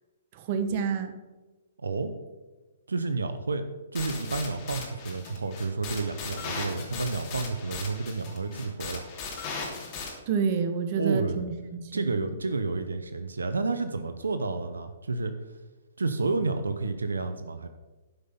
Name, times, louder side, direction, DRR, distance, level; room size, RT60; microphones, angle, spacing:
voice 1, 0.3-1.1 10.3-12.3, right 6 dB, 45° right, 8 dB, 1.1 m, -29 dB
voice 2, 1.8-2.1 2.9-3.7 3.9-9.1 10.9-11.4 11.9-15.3 16.0-17.7, right 3 dB, 85° right, 9 dB, 0.8 m, -30 dB
sound 1, 4.0-10.1, left 4 dB, 40° left, 2.8 m, -38 dB
11.5 x 5.6 x 5.8 m, 1.2 s
hypercardioid pair, 130°, 0 cm